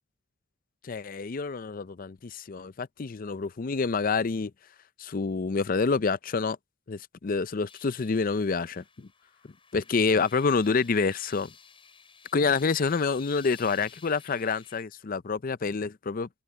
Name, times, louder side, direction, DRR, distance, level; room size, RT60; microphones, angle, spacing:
voice 1, 0.8-4.5 5.0-6.6 6.9-9.1 9.7-11.5 12.3-16.3, left 4 dB, 45° left, 0.5 m, -27 dB
sound 1, 7.7-14.8, left 6 dB, 25° left, 7.4 m, -53 dB
open air
head